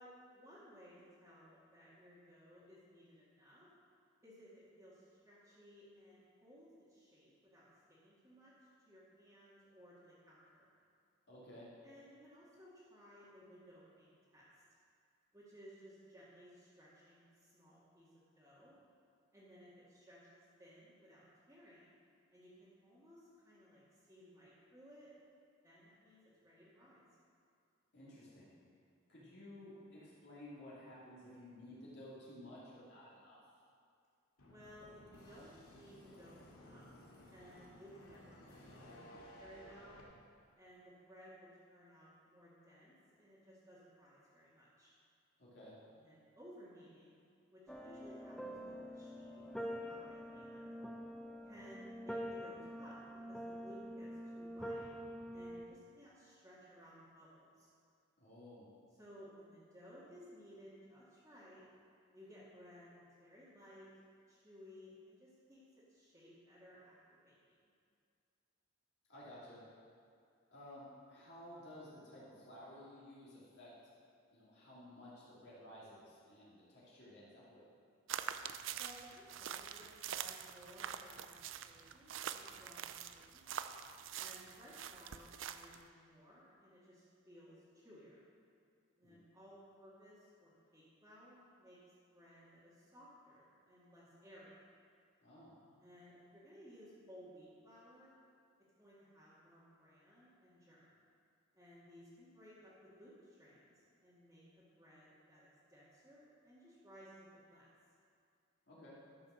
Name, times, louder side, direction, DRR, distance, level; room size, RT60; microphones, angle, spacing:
voice 1, 0.0-3.7 4.2-7.7 8.0-8.5 8.9-10.7 11.8-14.5 15.3-18.8 19.3-21.9 22.3-25.1 25.6-27.0 34.5-36.9 37.3-40.0 40.5-44.9 45.9-47.2 47.5-50.8 51.4-53.0 53.3-54.1 54.4-54.9 55.3-57.7 59.0-61.6 62.1-63.9 64.3-65.6 65.9-67.7 78.8-83.4 84.2-88.3 89.0-94.6 95.8-98.1 98.8-101.1 101.5-107.7, equal, 15° right, -12 dB, 2.1 m, -59 dB
voice 2, 11.3-11.7 27.9-28.5 29.1-33.4 45.4-45.7 58.2-58.7 69.1-69.6 70.5-73.7 74.3-77.6 89.0-89.2 95.2-95.5 108.7-109.0, left 1 dB, 50° left, -8 dB, 2.7 m, -54 dB
sound 1, 34.4-40.0, equal, 90° left, 2.5 m, -57 dB
sound 2, 47.7-55.7, equal, ahead, 0.6 m, -46 dB
sound 3, 78.1-85.8, right 9 dB, 60° right, 0.5 m, -45 dB
12.5 x 7.1 x 6.3 m, 2.3 s
head